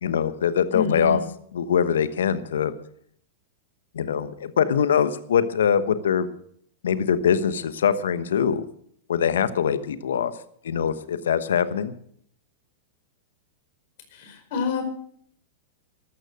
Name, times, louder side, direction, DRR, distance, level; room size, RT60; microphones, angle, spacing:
voice 1, 0.0-1.2 1.5-2.7 3.9-6.3 6.8-8.6 9.1-10.3 10.6-11.9, left 8 dB, 75° left, 13 dB, 1.1 m, -23 dB
voice 2, 0.7-1.2 14.1-14.8, left 5 dB, 60° left, 5 dB, 5.0 m, -28 dB
13.5 x 13.0 x 6.4 m, 0.63 s
hypercardioid pair, 100°, 0 cm